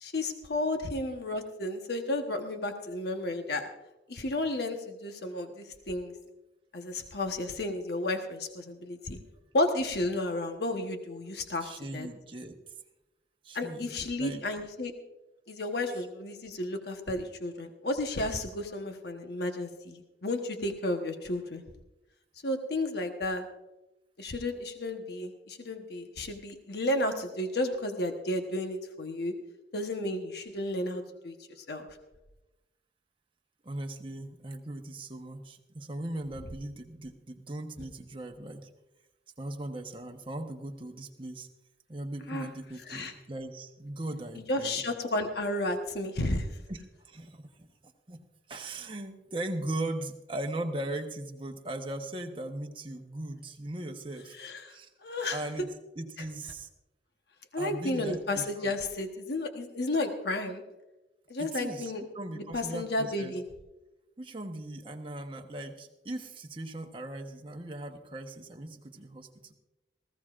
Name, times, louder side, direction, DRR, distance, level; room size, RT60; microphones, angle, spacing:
voice 1, 0.0-3.6 4.1-6.1 6.7-9.2 9.5-12.1 13.5-14.9 15.5-21.6 22.4-23.5 24.2-29.3 29.7-31.4 31.7-31.9 42.3-42.5 42.9-43.1 44.5-46.5 54.4-54.7 55.0-55.4 57.5-60.6 61.3-62.0 62.3-63.4, left 1 dB, 60° left, 5 dB, 1.2 m, -32 dB
voice 2, 11.6-12.5 13.4-14.4 33.6-38.7 39.4-41.5 41.9-44.8 46.7-54.4 54.7-54.9 55.3-55.7 56.0-56.7 57.6-58.7 61.4-63.3 64.2-69.5, right 1 dB, 30° right, 3 dB, 1.1 m, -39 dB
19.0 x 15.5 x 2.5 m, 0.99 s
head